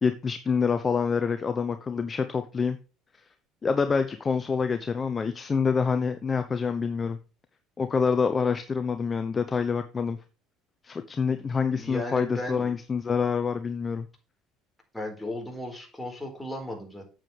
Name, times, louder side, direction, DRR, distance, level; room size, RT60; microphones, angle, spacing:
voice 1, 0.0-2.8 3.6-7.2 7.8-10.2 10.8-14.1, left 5 dB, 30° left, 9 dB, 0.8 m, -26 dB
voice 2, 11.7-12.7 14.9-17.1, left 1 dB, 10° left, 1 dB, 4.5 m, -35 dB
8.9 x 7.7 x 3.3 m, 0.34 s
hypercardioid pair, 75°, 0 cm